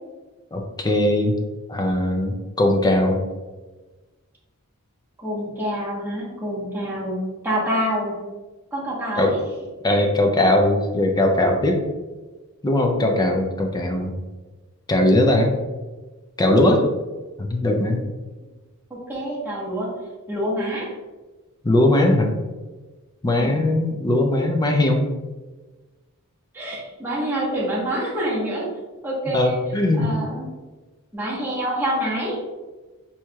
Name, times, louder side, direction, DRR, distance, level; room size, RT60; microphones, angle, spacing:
voice 1, 0.5-1.4 1.7-3.2 9.2-9.4 9.8-11.8 12.6-14.1 14.9-15.5 16.4-16.9 17.4-18.0 21.6-22.3 23.2-25.1 29.3-30.1, left 1 dB, 20° left, 3 dB, 0.4 m, -19 dB
voice 2, 5.2-8.2 8.7-9.4 18.9-19.9 20.3-20.9 23.3-23.6 26.5-28.7 29.0-29.6 30.0-30.5 31.1-32.4, equal, 10° right, -7 dB, 1.1 m, -27 dB
4.5 x 2.8 x 2.3 m, 1.2 s
head